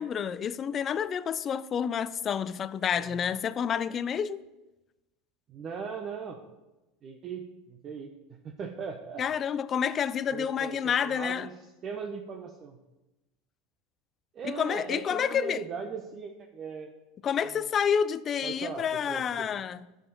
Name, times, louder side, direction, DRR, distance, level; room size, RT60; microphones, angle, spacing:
voice 1, 0.0-4.4 9.2-11.5 14.6-15.6 17.2-19.8, left 7 dB, 35° left, 0.4 m, -29 dB
voice 2, 5.5-6.4 7.0-8.1 8.4-9.2 10.3-12.8 14.3-16.9 18.4-19.5, right 6 dB, 35° right, 0.9 m, -39 dB
10.5 x 5.0 x 5.6 m
supercardioid pair, 115°, 0 cm